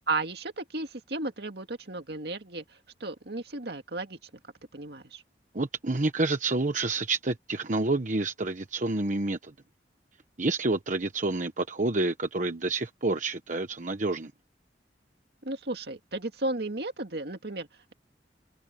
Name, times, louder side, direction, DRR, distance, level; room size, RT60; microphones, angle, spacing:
voice 1, 0.1-4.2 4.7-5.2 15.4-17.9, right 2 dB, 65° right, 2.3 m, -34 dB
voice 2, 5.5-9.5 10.4-14.3, right 2 dB, 45° right, 1.1 m, -28 dB
head